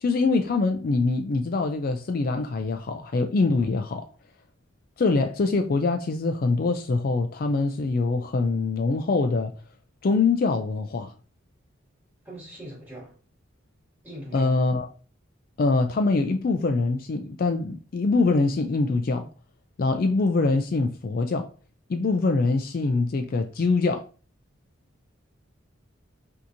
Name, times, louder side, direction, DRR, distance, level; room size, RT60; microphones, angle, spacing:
voice 1, 0.0-4.0 5.0-9.5 10.0-11.1 14.3-14.9 15.6-19.3 19.8-21.5 21.9-24.1, left 3 dB, 45° left, 0.3 m, -24 dB
voice 2, 12.2-13.2 14.0-14.7, right 1 dB, 10° right, 2.2 m, -41 dB
5.8 x 2.8 x 2.6 m
head